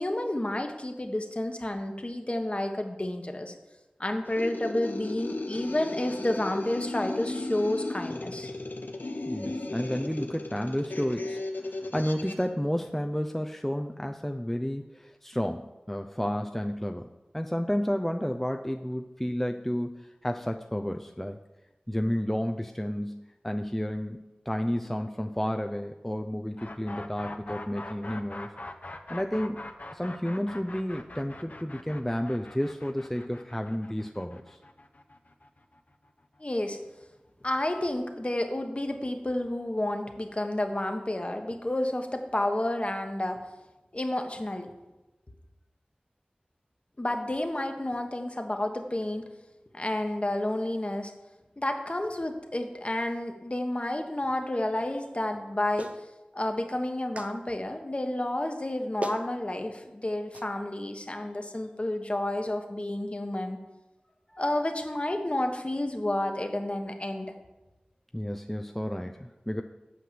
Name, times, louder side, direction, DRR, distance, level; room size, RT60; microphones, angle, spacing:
voice 1, 0.0-3.5 4.0-8.5 36.4-36.8 37.4-43.4 43.9-44.7 47.0-49.2 49.7-51.1 51.6-55.9 56.3-63.6 64.4-67.3, left 1 dB, 40° left, 5 dB, 1.2 m, -30 dB
sound 1, 4.3-12.5, left 2 dB, 85° left, 0.8 m, -36 dB
voice 2, 9.3-17.1 17.3-21.4 21.9-28.5 29.1-29.6 29.9-34.6 68.1-69.6, equal, 10° left, 5 dB, 0.5 m, -31 dB
sound 2, 26.6-36.4, left 2 dB, 55° left, 0.9 m, -43 dB
Clapping, 55.8-56.0 57.1-57.3 58.6-58.7 59.0-59.3 60.3-60.5, right 1 dB, 45° right, 0.8 m, -35 dB
8.5 x 5.8 x 7.6 m, 1.0 s
wide cardioid pair, 40°, 3 cm